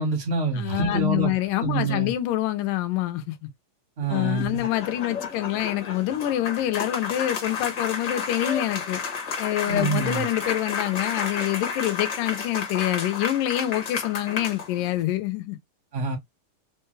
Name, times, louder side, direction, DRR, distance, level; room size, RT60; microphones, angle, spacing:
voice 1, 0.0-1.3 1.6-2.1 4.0-4.6 9.7-10.2 15.9-16.2, right 3 dB, 75° right, 0.6 m, -26 dB
voice 2, 0.6-3.4 4.1-9.0 9.4-15.6, left 14 dB, 85° left, 2.3 m, -26 dB
sound 1, 4.0-15.0, left 6 dB, 60° left, 1.1 m, -32 dB
5.2 x 2.3 x 3.1 m
omnidirectional pair, 3.7 m